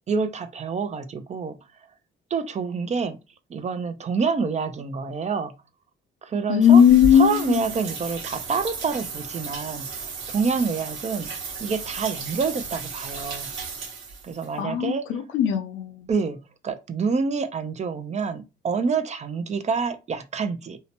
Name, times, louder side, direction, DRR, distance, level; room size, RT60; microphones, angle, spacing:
voice 1, 0.1-1.6 2.3-3.2 3.5-5.6 6.2-6.8 7.1-11.3 11.6-13.5 14.2-15.1 16.1-20.8, right 5 dB, 35° right, 0.5 m, -27 dB
voice 2, 6.5-7.6 14.6-16.1, left 8 dB, 80° left, 0.6 m, -18 dB
sound 1, 6.6-14.5, right 4 dB, 80° right, 1.0 m, -34 dB
2.7 x 2.1 x 2.8 m
cardioid pair, 90°, 20 cm